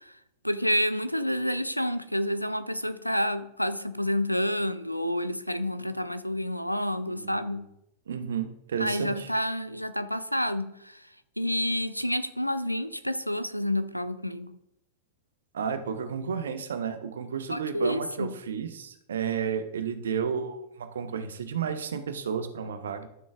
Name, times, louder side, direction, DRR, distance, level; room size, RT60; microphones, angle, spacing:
voice 1, 0.4-7.6 8.8-11.0 11.4-14.6 17.5-18.3, equal, 90° left, 12 dB, 0.4 m, -29 dB
voice 2, 7.1-7.7 8.1-9.3 15.5-23.1, right 7 dB, 65° right, 9 dB, 0.8 m, -32 dB
12.5 x 6.1 x 2.4 m, 0.79 s
figure-of-eight pair, 90°, 0 cm